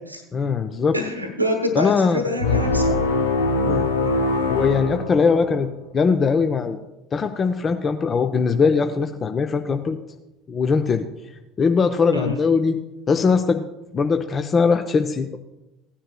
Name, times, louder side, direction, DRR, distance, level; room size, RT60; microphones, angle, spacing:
voice 1, 0.3-0.9 1.7-2.4 3.6-3.9 4.5-5.7 5.9-6.8 7.1-10.0 10.5-11.1 11.6-12.8 13.1-13.6 13.9-15.4, left 5 dB, 30° left, 6 dB, 0.6 m, -20 dB
voice 2, 0.9-3.0 12.1-12.3, left 1 dB, 90° right, 4 dB, 1.1 m, -26 dB
sound 1, 2.4-5.7, left 3 dB, 75° left, 0.8 m, -22 dB
16.5 x 10.0 x 2.3 m, 0.96 s
figure-of-eight pair, 65°, 0 cm